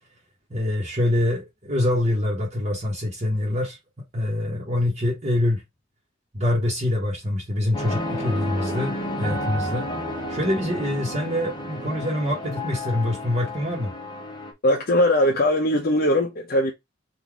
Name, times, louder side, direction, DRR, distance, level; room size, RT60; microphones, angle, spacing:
voice 1, 0.5-3.8 4.1-5.6 6.3-9.9 10.3-13.9, left 1 dB, 35° right, 1.2 m, -25 dB
sound 1, 7.7-14.5, left 1 dB, 25° left, 1.0 m, -31 dB
voice 2, 14.6-16.7, left 1 dB, 50° left, 0.7 m, -20 dB
3.8 x 2.6 x 4.6 m
head